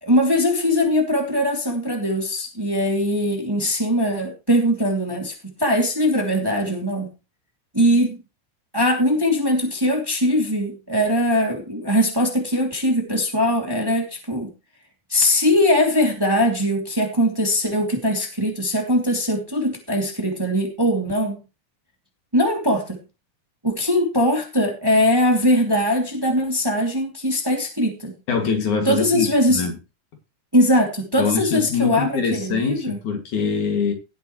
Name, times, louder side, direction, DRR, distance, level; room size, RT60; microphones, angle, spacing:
voice 1, 0.0-5.3 5.6-7.1 7.7-8.2 8.7-14.5 15.1-21.4 22.3-23.0 23.6-28.1 28.8-29.6 30.5-33.0, equal, 10° right, 2 dB, 2.5 m, -21 dB
voice 2, 28.3-29.7 31.2-33.9, left 5 dB, 70° left, 4 dB, 3.7 m, -24 dB
18.0 x 8.0 x 3.1 m, 0.28 s
omnidirectional pair, 3.6 m